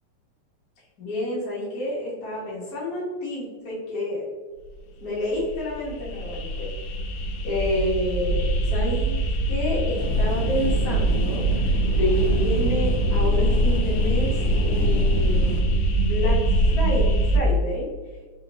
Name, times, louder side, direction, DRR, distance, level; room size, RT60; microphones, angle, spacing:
voice 1, 1.0-4.3 5.0-6.7 7.4-14.4 14.6-15.7 16.0-17.9, left 1 dB, 55° left, -7 dB, 1.0 m, -29 dB
sound 1, 5.4-17.4, right 1 dB, 80° left, 1.6 m, -23 dB
sound 2, 10.0-15.6, right 1 dB, 55° right, 0.9 m, -31 dB
4.7 x 3.3 x 2.9 m, 1.4 s
omnidirectional pair, 3.5 m